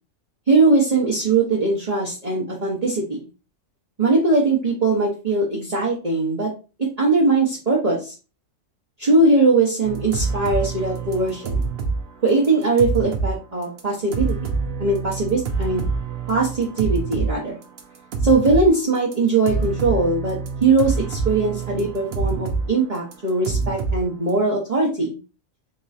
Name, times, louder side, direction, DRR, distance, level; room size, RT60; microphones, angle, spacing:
voice 1, 0.5-3.2 4.0-6.5 7.0-8.1 9.0-11.7 12.2-14.5 14.8-15.8 16.3-17.6 18.2-25.1, right 3 dB, 35° right, -6 dB, 1.0 m, -20 dB
sound 1, 9.8-12.0 12.3-13.3 13.6-13.8 14.1-17.3 17.6-18.7 19.1-19.2 19.5-22.7 22.9-24.0, right 4 dB, 55° right, 0.9 m, -26 dB
4.1 x 3.0 x 2.7 m, 0.32 s
omnidirectional pair, 1.4 m